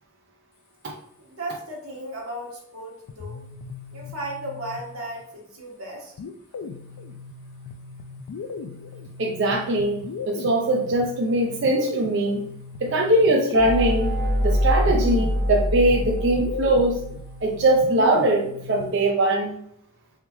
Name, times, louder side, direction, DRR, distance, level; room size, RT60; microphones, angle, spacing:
voice 1, 1.2-3.4 3.9-6.1, right 1 dB, 85° right, -2 dB, 1.2 m, -35 dB
sound 1, 3.1-5.2 6.2-19.1, left 4 dB, 85° left, 0.3 m, -38 dB
voice 2, 9.2-12.5 12.8-14.1 14.4-17.0 17.4-19.6, right 1 dB, 55° right, 0 dB, 0.4 m, -21 dB
sound 2, 13.5-17.3, equal, 15° left, 0.6 m, -24 dB
3.5 x 3.2 x 2.9 m, 0.74 s
head